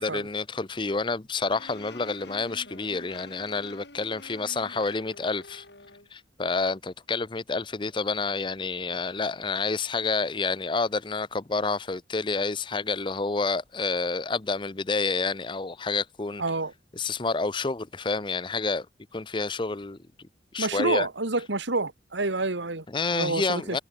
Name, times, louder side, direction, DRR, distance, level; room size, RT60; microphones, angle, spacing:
voice 1, 0.0-5.6 6.1-16.4 17.0-18.9 19.1-20.0 20.5-21.1 22.9-23.8, left 3 dB, 25° left, 0.6 m, -29 dB
sound 1, 1.5-6.1, left 2 dB, 70° left, 7.6 m, -48 dB
voice 2, 16.4-16.7 20.6-22.9 23.1-23.8, right 3 dB, 85° right, 2.0 m, -28 dB
head